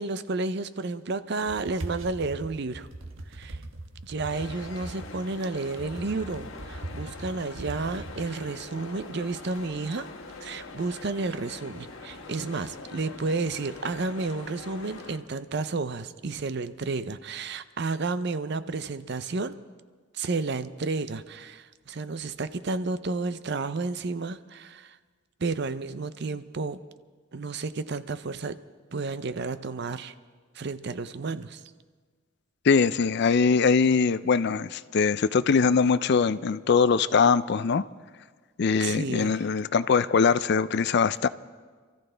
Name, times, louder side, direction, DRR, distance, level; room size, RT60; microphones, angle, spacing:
voice 1, 0.0-2.9 3.3-3.6 4.0-10.1 10.4-19.6 20.1-25.0 25.4-26.8 27.3-28.6 28.9-30.1 30.5-31.6 38.8-39.4, right 3 dB, 55° right, 13 dB, 0.6 m, -31 dB
sound 1, 1.4-11.3, right 1 dB, 75° right, 1.3 m, -41 dB
sound 2, 4.3-15.2, left 3 dB, 75° left, 1.5 m, -43 dB
voice 2, 32.7-37.8 38.6-41.3, left 5 dB, 55° left, 15 dB, 0.4 m, -22 dB
27.5 x 14.0 x 3.4 m, 1.5 s
head